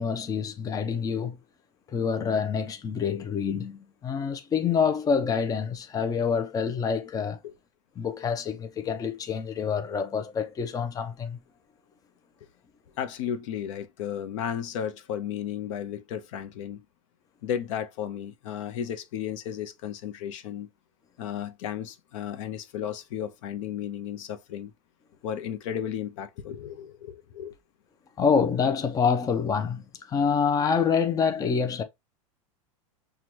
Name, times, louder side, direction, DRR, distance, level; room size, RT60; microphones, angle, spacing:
voice 1, 0.0-1.4 1.9-7.4 8.0-11.4 28.2-31.8, left 6 dB, 20° left, 0.6 m, -27 dB
voice 2, 13.0-16.8 17.4-20.7 21.2-24.7 25.2-27.6, left 9 dB, 65° left, 0.7 m, -34 dB
6.0 x 2.4 x 2.8 m
hypercardioid pair, 105°, 17 cm